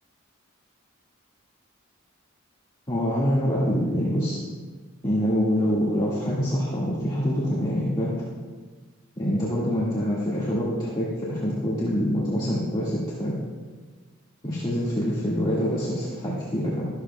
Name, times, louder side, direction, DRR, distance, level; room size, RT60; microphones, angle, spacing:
voice 1, 2.9-4.4 5.0-8.1 9.2-13.3 14.4-16.9, equal, 25° left, -8 dB, 1.9 m, -25 dB
13.0 x 13.0 x 2.3 m, 1.4 s
head